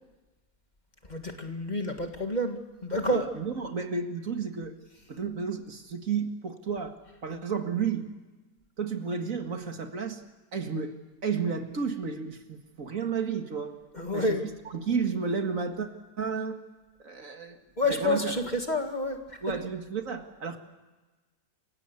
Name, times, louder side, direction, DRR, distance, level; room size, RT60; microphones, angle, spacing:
voice 1, 1.1-3.3 13.9-14.4 17.8-19.2 19.5-19.6, left 1 dB, 30° left, 5 dB, 2.0 m, -29 dB
voice 2, 3.1-4.7 5.1-7.0 7.2-8.1 8.8-10.2 10.5-13.7 14.1-15.9 16.2-16.6 17.0-17.6 17.9-18.4 19.4-20.6, right 5 dB, 60° right, 6 dB, 2.2 m, -32 dB
28.0 x 16.5 x 8.2 m, 1.2 s
omnidirectional pair, 1.6 m